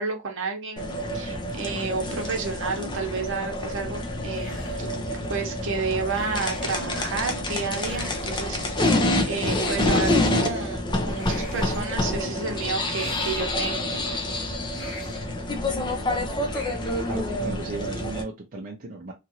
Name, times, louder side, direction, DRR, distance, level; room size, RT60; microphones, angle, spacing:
voice 1, 0.0-4.6 5.3-8.9 9.2-13.8, right 4 dB, 65° right, 0.9 m, -31 dB
sound 1, 0.8-18.2, left 1 dB, 20° left, 0.5 m, -27 dB
sound 2, 4.3-5.1 6.0-6.8 7.8-8.6 9.5-10.3 11.1-12.0 12.9-13.8 14.7-15.4 16.5-17.2, left 1 dB, 60° left, 1.5 m, -43 dB
voice 2, 17.0-19.1, right 3 dB, 45° right, 0.5 m, -36 dB
2.9 x 2.5 x 2.7 m
head